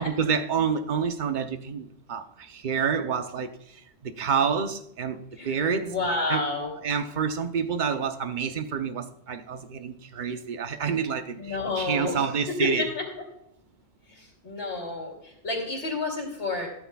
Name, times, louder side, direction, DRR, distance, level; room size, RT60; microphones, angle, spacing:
voice 1, 0.0-5.9 6.3-6.5 6.8-12.8, right 6 dB, 45° right, 0.9 m, -28 dB
voice 2, 5.4-6.7 11.4-13.1 14.1-16.7, left 2 dB, 85° left, 3.2 m, -30 dB
14.0 x 12.5 x 2.3 m
omnidirectional pair, 1.1 m